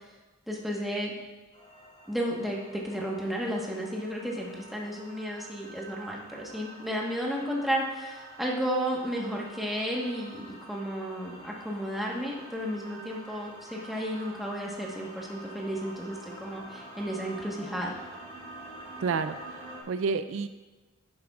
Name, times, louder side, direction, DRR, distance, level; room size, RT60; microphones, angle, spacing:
voice 1, 0.5-1.1 2.1-17.9, equal, ahead, -3 dB, 1.3 m, -33 dB
sound 1, 1.5-19.8, right 1 dB, 25° left, 2.9 m, -47 dB
voice 2, 19.0-20.5, right 5 dB, 65° right, 11 dB, 0.3 m, -30 dB
11.0 x 9.5 x 2.4 m, 1.2 s
head